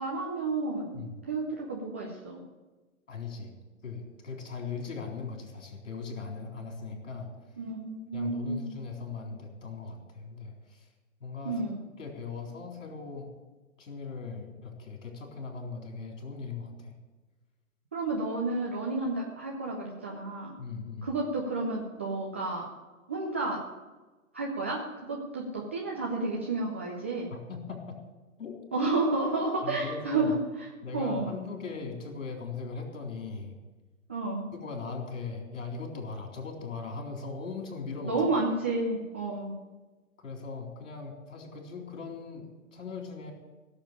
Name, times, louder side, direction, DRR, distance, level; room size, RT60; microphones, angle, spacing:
voice 1, 0.0-2.4 7.6-8.8 11.4-11.8 17.9-20.5 21.0-22.7 23.1-23.6 24.3-27.3 28.7-30.4 30.9-31.3 34.1-34.5 38.0-39.5, right 2 dB, 10° right, -3 dB, 0.4 m, -31 dB
voice 2, 3.1-3.5 3.8-7.5 8.1-10.9 11.2-11.7 12.0-13.3 13.8-16.9 20.6-21.1 27.3-28.0 28.4-28.6 29.6-30.3 30.8-33.6 34.5-38.2 40.2-43.3, left 4 dB, 60° left, 1 dB, 3.9 m, -39 dB
16.5 x 7.3 x 8.6 m, 1.2 s
figure-of-eight pair, 120°, 43 cm